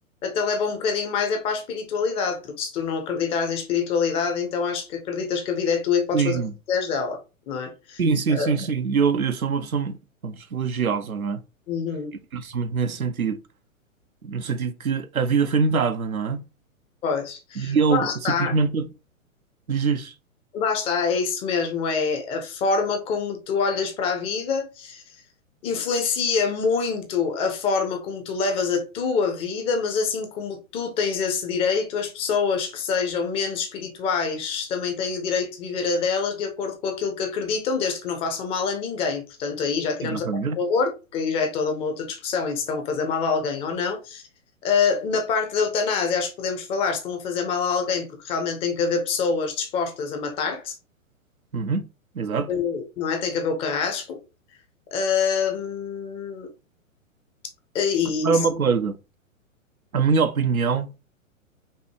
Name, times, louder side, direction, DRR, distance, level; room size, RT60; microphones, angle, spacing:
voice 1, 0.2-6.4 6.7-7.2 7.5-8.0 8.4-8.5 11.7-12.1 17.0-18.5 20.5-25.0 25.6-40.3 40.6-44.2 44.6-50.7 52.5-54.2 54.9-56.5 57.7-58.4, left 5 dB, 15° left, 0.5 m, -25 dB
voice 2, 6.1-6.5 8.0-11.4 12.3-13.4 14.2-16.4 17.6-18.9 19.7-20.1 40.0-40.6 51.5-51.9 52.1-52.5 58.2-59.0 59.9-60.9, right 5 dB, 90° right, 0.6 m, -24 dB
5.4 x 2.2 x 3.1 m
figure-of-eight pair, 110°, 41 cm